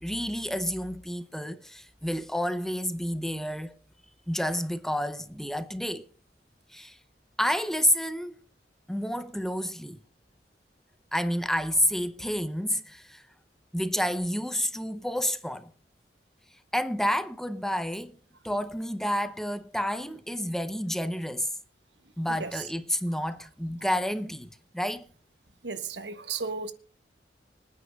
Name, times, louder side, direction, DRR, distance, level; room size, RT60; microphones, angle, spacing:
voice 1, 0.0-3.8 4.3-6.1 6.7-7.0 7.4-8.3 8.9-10.0 11.1-13.2 13.7-15.7 16.7-18.2 18.4-21.5 22.2-25.1, equal, ahead, 0.7 m, -29 dB
voice 2, 22.3-22.6 23.8-23.9 25.6-26.7, right 5 dB, 80° right, 1.4 m, -35 dB
25.5 x 9.5 x 2.3 m
head